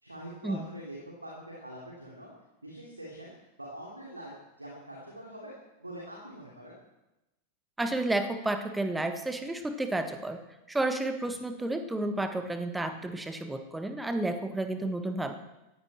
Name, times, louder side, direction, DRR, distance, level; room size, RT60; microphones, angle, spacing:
voice 1, 0.0-2.3 2.6-5.5 5.8-6.7, right 1 dB, 85° right, -3 dB, 3.2 m, -44 dB
voice 2, 7.8-10.4 10.7-15.3, right 2 dB, 5° right, 8 dB, 1.5 m, -31 dB
17.5 x 15.0 x 4.3 m, 0.96 s
figure-of-eight pair, 90°, 0 cm